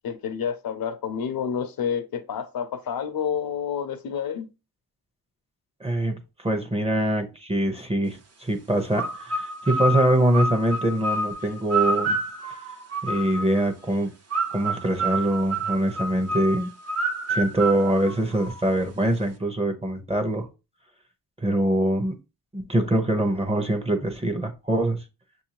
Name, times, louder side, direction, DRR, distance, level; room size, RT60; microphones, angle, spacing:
voice 1, 0.0-4.5, left 7 dB, 70° left, 0.7 m, -29 dB
voice 2, 5.8-12.2 13.0-14.1 14.5-16.7 17.3-20.5 21.4-22.1 22.5-25.0, right 1 dB, 15° right, 0.9 m, -24 dB
sound 1, 8.9-13.6 14.3-18.8, right 2 dB, 45° right, 0.9 m, -28 dB
6.7 x 2.7 x 2.9 m
wide cardioid pair, 120°, 37 cm